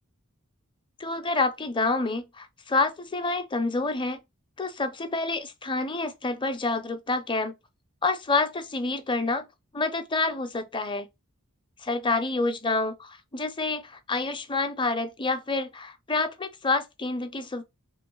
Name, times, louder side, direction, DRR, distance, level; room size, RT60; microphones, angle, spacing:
voice 1, 1.0-4.2 4.6-7.5 8.0-9.5 9.7-11.1 11.8-17.6, left 3 dB, 20° left, 0.6 m, -28 dB
3.3 x 3.1 x 4.5 m
head